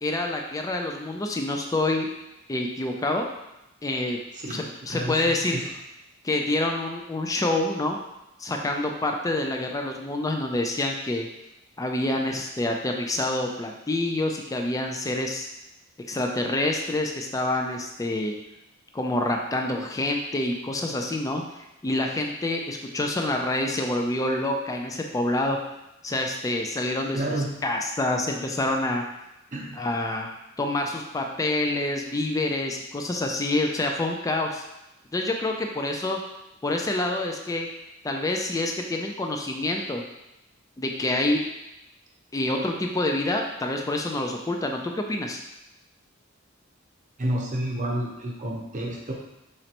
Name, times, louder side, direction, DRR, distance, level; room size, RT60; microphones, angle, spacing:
voice 1, 0.0-2.1 2.5-3.2 3.8-4.2 4.5-5.6 6.2-8.0 8.4-11.3 11.8-15.5 16.1-18.4 18.9-25.6 26.0-27.2 27.6-29.0 29.8-30.3 30.6-34.6 35.1-36.2 36.6-37.7 38.0-40.0 40.8-41.4 42.3-45.4, left 2 dB, 15° left, 2 dB, 0.3 m, -27 dB
voice 2, 4.9-5.6 27.1-27.5 29.5-29.8 47.2-49.1, right 1 dB, 40° right, -2 dB, 0.8 m, -30 dB
5.1 x 3.1 x 2.9 m, 0.92 s
head